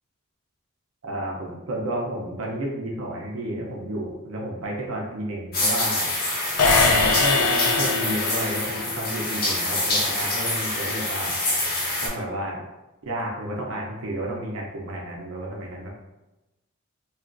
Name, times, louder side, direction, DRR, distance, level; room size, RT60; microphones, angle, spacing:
voice 1, 1.0-6.1 6.9-11.3 12.0-12.6 13.0-15.9, right 1 dB, 70° right, -2 dB, 0.5 m, -31 dB
sound 1, 5.5-12.1, left 2 dB, 45° left, 0.6 m, -26 dB
sound 2, 6.6-8.8, left 4 dB, 85° left, 0.4 m, -22 dB
2.9 x 2.4 x 2.4 m, 1.0 s
head